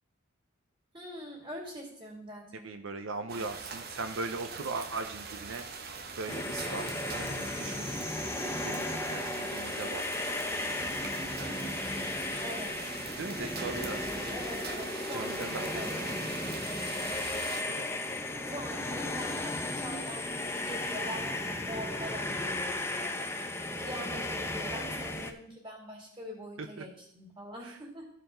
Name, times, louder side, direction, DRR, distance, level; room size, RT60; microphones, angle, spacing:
voice 1, 0.9-2.7 12.4-13.0 14.3-16.0 18.4-28.1, equal, 25° right, -1 dB, 2.5 m, -44 dB
voice 2, 2.6-5.7 6.2-8.0 8.4-10.0 13.2-14.3 15.1-16.0 17.7-17.8 26.6-26.8 27.6-27.8, right 3 dB, 75° right, 7 dB, 0.6 m, -39 dB
sound 1, 3.3-17.6, right 5 dB, 50° right, 0.8 m, -42 dB
sound 2, 6.3-25.3, left 2 dB, 10° left, 0.6 m, -35 dB
14.0 x 4.7 x 3.8 m, 0.70 s
head